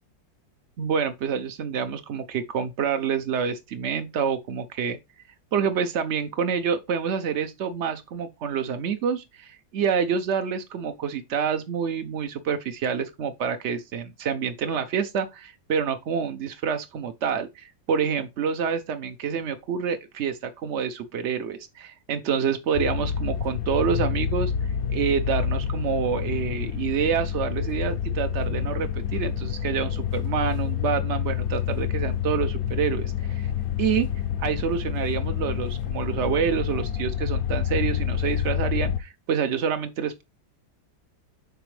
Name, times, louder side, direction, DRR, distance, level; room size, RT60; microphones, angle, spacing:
voice 1, 0.8-5.0 5.5-24.5 24.9-33.5 33.8-34.1 34.4-40.2, right 7 dB, 65° right, 0.6 m, -27 dB
sound 1, 22.7-39.0, left 8 dB, 70° left, 0.8 m, -28 dB
8.0 x 5.0 x 3.2 m
omnidirectional pair, 2.1 m